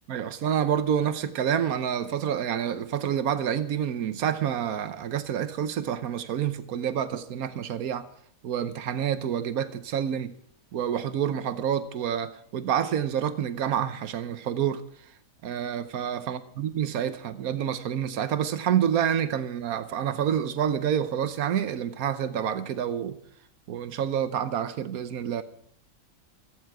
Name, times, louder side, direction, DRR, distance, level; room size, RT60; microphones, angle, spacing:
voice 1, 0.1-8.1 8.4-10.3 10.7-14.8 15.4-23.2 23.7-25.4, right 9 dB, 90° right, 1.3 m, -28 dB
17.0 x 14.5 x 4.8 m
omnidirectional pair, 1.5 m